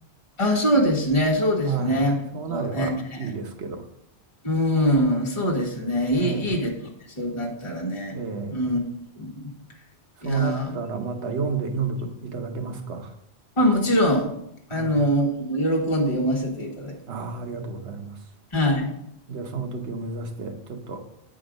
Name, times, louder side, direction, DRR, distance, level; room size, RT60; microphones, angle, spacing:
voice 1, 0.4-2.2 2.5-3.3 4.4-6.7 7.2-8.2 8.5-8.8 9.2-9.4 10.2-10.8 13.6-14.3 14.7-16.9 18.5-18.9, equal, 25° left, -2 dB, 1.4 m, -23 dB
voice 2, 2.3-3.8 6.2-6.5 8.1-8.6 10.2-13.1 14.7-15.0 17.1-18.2 19.3-21.0, right 5 dB, 80° right, 4 dB, 1.2 m, -31 dB
8.6 x 3.8 x 5.0 m, 0.75 s
omnidirectional pair, 1.1 m